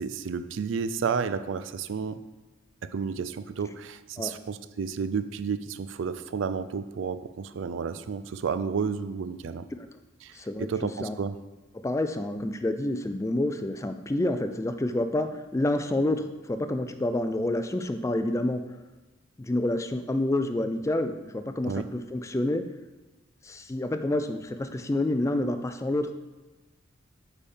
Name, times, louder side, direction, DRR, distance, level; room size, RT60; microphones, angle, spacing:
voice 1, 0.0-2.2 2.9-9.7 10.2-10.3 10.6-11.4 21.6-21.9, right 6 dB, 70° right, 12 dB, 0.4 m, -31 dB
voice 2, 10.3-10.7 11.0-11.2 11.7-18.6 19.4-22.7 23.4-26.1, left 1 dB, 15° left, 8 dB, 0.3 m, -28 dB
8.4 x 3.5 x 5.4 m, 1.1 s
head